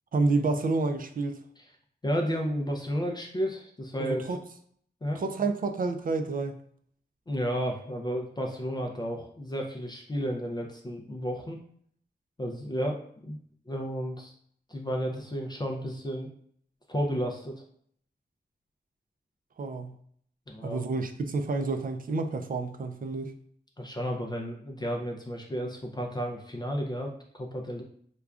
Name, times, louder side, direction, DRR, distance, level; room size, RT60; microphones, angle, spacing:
voice 1, 0.1-1.4 4.0-4.4 5.2-6.5 19.6-19.9 20.6-23.3, right 3 dB, 50° right, 7 dB, 0.4 m, -29 dB
voice 2, 2.0-4.2 5.0-5.2 7.3-11.6 12.4-13.4 13.7-14.3 14.7-16.3 16.9-17.6 20.5-20.8 23.8-27.8, equal, 25° left, 1 dB, 0.4 m, -32 dB
4.9 x 2.2 x 2.3 m, 0.63 s
wide cardioid pair, 105°, 18 cm